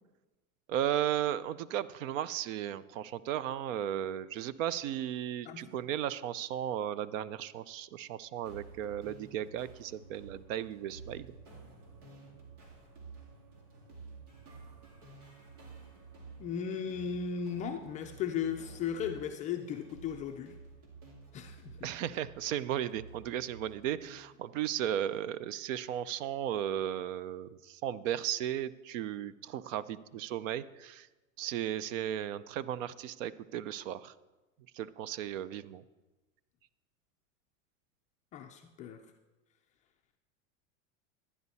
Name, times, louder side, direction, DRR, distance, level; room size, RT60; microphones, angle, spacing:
voice 1, 0.7-11.3 21.8-31.1 31.4-34.1 34.7-35.8, right 11 dB, 65° right, 17 dB, 0.6 m, -35 dB
voice 2, 5.5-5.8 16.4-20.6 21.3-21.9 38.3-39.0, left 7 dB, 20° left, 4 dB, 0.3 m, -36 dB
sound 1, 8.5-24.4, right 4 dB, 85° right, 2.5 m, -52 dB
12.5 x 9.7 x 4.1 m, 1.1 s
supercardioid pair, 125°, 43 cm